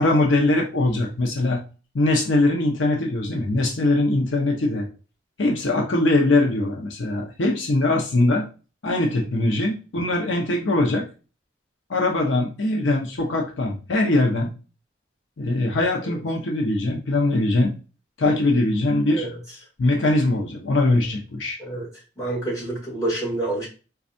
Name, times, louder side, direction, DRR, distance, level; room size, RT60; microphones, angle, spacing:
voice 1, 0.0-1.6 1.9-4.9 5.4-8.4 8.8-11.0 11.9-14.5 15.4-17.7 18.2-19.3 19.8-21.6, left 2 dB, 85° left, 1 dB, 0.7 m, -21 dB
voice 2, 22.2-23.7, right 2 dB, 15° left, -8 dB, 1.7 m, -27 dB
4.2 x 2.4 x 2.6 m, 0.33 s
head